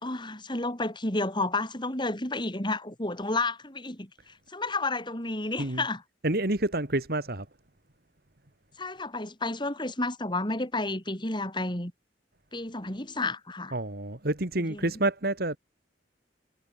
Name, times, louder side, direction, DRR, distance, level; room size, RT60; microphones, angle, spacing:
voice 1, 0.0-6.0 8.8-11.9 12.5-13.7 14.7-14.9, left 2 dB, 25° left, 5.6 m, -31 dB
voice 2, 6.2-7.5 13.7-15.6, right 2 dB, 60° right, 2.4 m, -28 dB
head